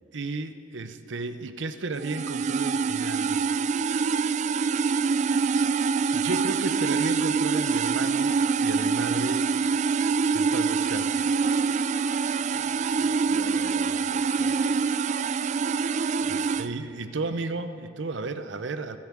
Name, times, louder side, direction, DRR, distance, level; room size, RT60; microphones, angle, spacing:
voice 1, 0.1-3.4 4.1-4.5 6.1-9.5 10.3-11.3 16.3-19.0, right 3 dB, 70° right, 11 dB, 0.7 m, -34 dB
sound 1, 2.0-16.7, right 5 dB, 40° right, 0.3 m, -25 dB
voice 2, 12.5-14.6 16.2-17.0, left 2 dB, 40° left, 5 dB, 1.3 m, -46 dB
16.0 x 12.0 x 7.5 m, 2.7 s
head